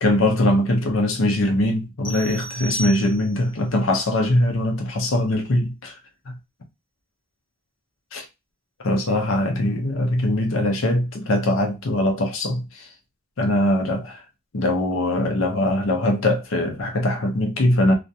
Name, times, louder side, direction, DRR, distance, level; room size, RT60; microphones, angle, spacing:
voice 1, 0.0-5.9 8.1-8.3 8.8-12.9 13.4-14.2 14.5-17.9, left 1 dB, 75° left, 0.7 m, -21 dB
sound 1, 2.0-3.6, right 2 dB, 25° left, 0.5 m, -34 dB
2.5 x 2.2 x 2.6 m
head